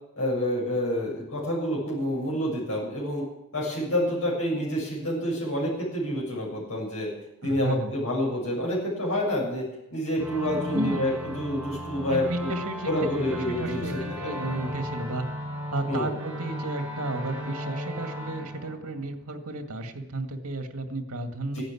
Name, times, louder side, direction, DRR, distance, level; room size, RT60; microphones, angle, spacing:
voice 1, 0.2-3.2 3.5-7.1 7.4-9.6 9.9-12.5 12.9-14.3 15.9-16.1 21.5-21.6, equal, 65° left, -4 dB, 6.9 m, -28 dB
voice 2, 7.4-7.9 10.7-11.1 12.1-12.9 13.3-15.2 15.7-21.6, right 2 dB, 80° right, 5 dB, 2.0 m, -33 dB
sound 1, 10.2-19.5, equal, 5° right, 5.3 m, -35 dB
15.5 x 10.5 x 8.5 m, 0.83 s
head